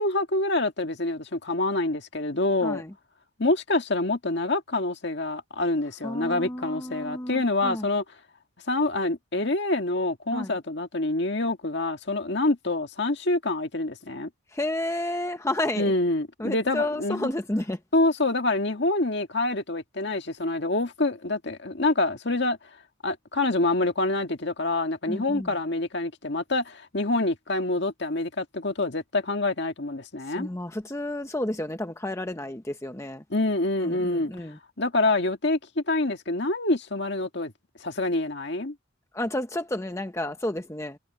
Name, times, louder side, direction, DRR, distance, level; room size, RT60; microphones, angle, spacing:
voice 1, 0.0-2.8 3.4-8.0 8.7-14.3 15.8-17.3 17.9-22.6 23.0-30.5 33.3-34.3 34.8-37.5 37.8-38.7, left 2 dB, 55° left, 1.9 m, -26 dB
voice 2, 6.0-7.8 10.3-10.5 14.5-15.9 16.4-17.8 25.1-25.5 30.4-33.2 33.8-34.6 39.1-41.0, left 1 dB, 15° left, 0.9 m, -31 dB
head